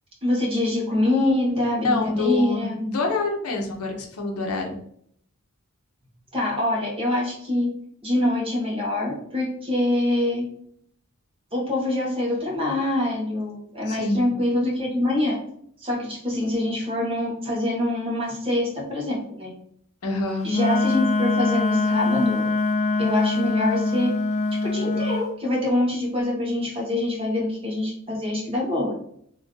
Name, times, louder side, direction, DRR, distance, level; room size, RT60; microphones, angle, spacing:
voice 1, 0.2-2.9 6.3-7.7 8.0-10.4 11.5-15.4 15.8-19.5 20.4-22.5 23.0-24.1 24.6-28.9, left 1 dB, 25° right, -2 dB, 1.2 m, -25 dB
voice 2, 1.8-4.8 13.9-14.3 20.0-20.5, left 3 dB, 85° left, 2 dB, 0.8 m, -26 dB
Wind instrument woodwind instrument, 20.5-25.2, left 3 dB, 35° left, 0.4 m, -23 dB
3.1 x 2.5 x 3.8 m, 0.67 s
head